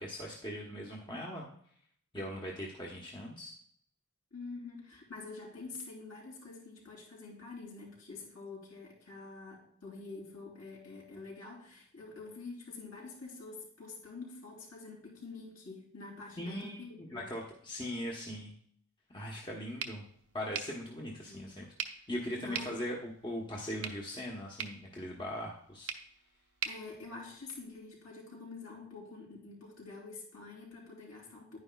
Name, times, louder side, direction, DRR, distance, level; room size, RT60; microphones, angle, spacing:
voice 1, 0.0-1.5 2.1-3.5 16.4-18.5 19.1-20.0 20.3-21.7 22.1-25.9, equal, 20° left, -3 dB, 1.1 m, -40 dB
voice 2, 4.3-17.3 21.3-21.6 21.9-22.0 22.4-22.8 26.6-31.6, left 3 dB, 65° left, -2 dB, 3.7 m, -47 dB
sound 1, 19.8-27.8, right 7 dB, 70° right, 0.9 m, -45 dB
10.5 x 9.6 x 2.3 m, 0.63 s
head